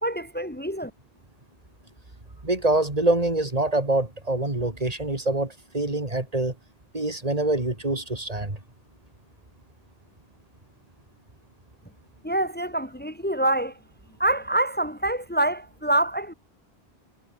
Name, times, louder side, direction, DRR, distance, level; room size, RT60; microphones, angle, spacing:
voice 1, 0.0-0.9 12.2-13.8 14.2-16.3, right 1 dB, 10° left, 2.6 m, -26 dB
voice 2, 2.4-6.5 6.9-8.6, right 2 dB, 35° right, 2.9 m, -25 dB
omnidirectional pair, 1.1 m